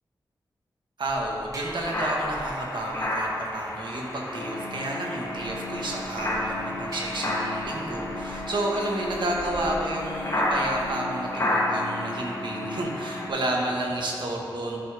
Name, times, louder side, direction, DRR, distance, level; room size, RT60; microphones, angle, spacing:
voice 1, 1.0-14.8, right 1 dB, 70° right, -1 dB, 1.4 m, -31 dB
sound 1, 1.1-11.0, right 1 dB, 40° right, 1.2 m, -45 dB
sound 2, 1.7-13.3, left 1 dB, 35° left, 1.9 m, -32 dB
sound 3, 4.3-13.3, left 2 dB, 75° left, 1.5 m, -37 dB
13.0 x 7.0 x 3.5 m, 2.6 s
wide cardioid pair, 90°, 8 cm